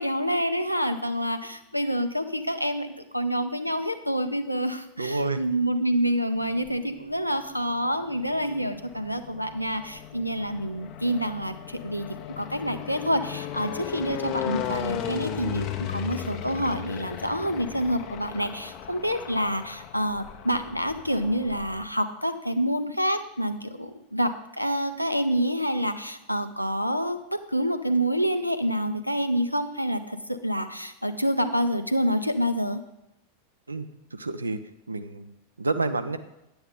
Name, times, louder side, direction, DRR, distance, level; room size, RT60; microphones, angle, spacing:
voice 1, 0.0-32.8, equal, 90° left, 8 dB, 0.6 m, -27 dB
voice 2, 5.0-5.4 33.7-34.6 34.9-35.3 35.6-36.2, right 3 dB, 80° right, 10 dB, 0.6 m, -29 dB
sound 1, 6.3-7.1 7.9-21.9, left 10 dB, 40° left, 0.7 m, -36 dB
9.9 x 7.9 x 3.7 m, 0.92 s
figure-of-eight pair, 90°, 0 cm